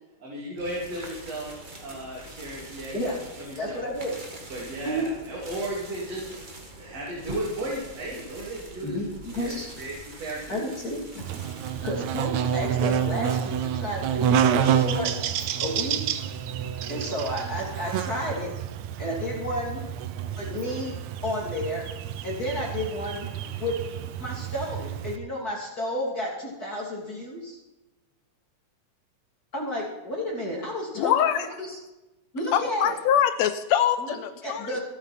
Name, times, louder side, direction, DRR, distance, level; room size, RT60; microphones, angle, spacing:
voice 1, 0.2-1.5 1.8-3.2 3.5-3.8 4.5-6.3 6.8-9.0 9.3-10.6 11.9-12.1, right 1 dB, 60° right, -5 dB, 4.0 m, -35 dB
sound 1, 0.6-11.9, right 1 dB, 25° right, 1.1 m, -44 dB
voice 2, 3.6-4.2 4.8-5.1 8.8-9.7 10.5-11.2 11.8-15.1 15.6-16.2 16.9-18.5 19.0-19.8 20.4-21.0 21.2-21.8 22.2-23.3 23.6-23.7 24.2-27.6 29.5-31.8 32.3-33.0 34.0-34.2 34.4-34.8, left 1 dB, 30° left, -3 dB, 3.4 m, -31 dB
Buzz, 11.2-25.2, right 9 dB, 75° right, 2.1 m, -28 dB
voice 3, 31.0-31.5 32.5-34.7, left 10 dB, 75° left, 11 dB, 1.8 m, -23 dB
25.0 x 8.6 x 4.4 m, 1.0 s
omnidirectional pair, 3.3 m